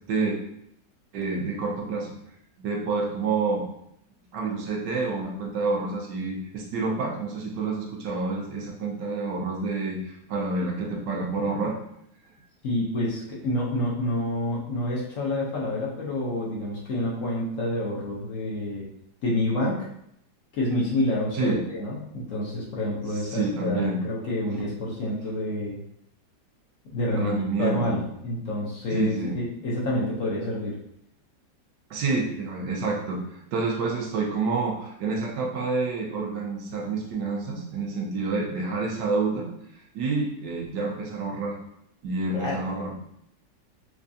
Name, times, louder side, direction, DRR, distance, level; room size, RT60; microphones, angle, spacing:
voice 1, 1.1-2.1 2.6-3.6 4.3-11.8 21.3-21.6 23.1-24.0 27.2-28.0 28.9-29.3 31.9-39.5 39.9-41.6 42.0-43.0, right 3 dB, 90° right, -1 dB, 1.4 m, -28 dB
voice 2, 12.6-18.9 19.2-19.8 20.5-25.8 26.9-30.7 42.3-42.6, left 1 dB, 55° left, -4 dB, 1.0 m, -28 dB
4.6 x 2.5 x 2.6 m, 0.75 s
omnidirectional pair, 1.9 m